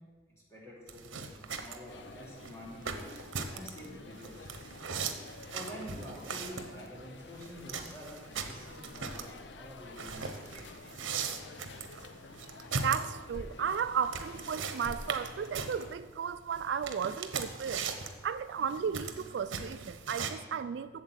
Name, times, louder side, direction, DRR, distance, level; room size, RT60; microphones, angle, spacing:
voice 1, 0.5-3.2 3.5-5.0 5.5-10.7, equal, 15° left, -6 dB, 3.0 m, -48 dB
sound 1, 0.9-20.3, right 5 dB, 90° right, 1.0 m, -39 dB
sound 2, 1.9-15.9, left 3 dB, 65° left, 0.6 m, -50 dB
voice 2, 12.8-17.9 18.2-21.0, right 7 dB, 65° right, 13 dB, 0.3 m, -34 dB
8.2 x 7.4 x 7.8 m, 1.4 s
head